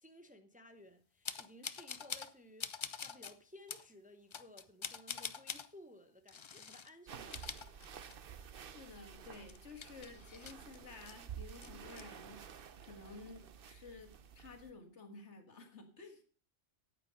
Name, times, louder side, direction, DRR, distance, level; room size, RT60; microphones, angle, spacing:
voice 1, 0.0-2.7 3.0-7.8, left 1 dB, 10° right, 0.8 m, -58 dB
sound 1, 1.2-2.3 2.6-3.3 3.7-3.9 4.3-5.7 6.3-6.9 7.2-8.4 8.7-8.8 9.2-11.1 11.5-12.0, left 6 dB, 50° left, 0.3 m, -45 dB
sound 2, 7.1-14.7, right 8 dB, 55° right, 0.9 m, -51 dB
voice 2, 8.7-16.2, left 3 dB, 75° left, 2.0 m, -53 dB
9.2 x 8.8 x 5.3 m
omnidirectional pair, 1.2 m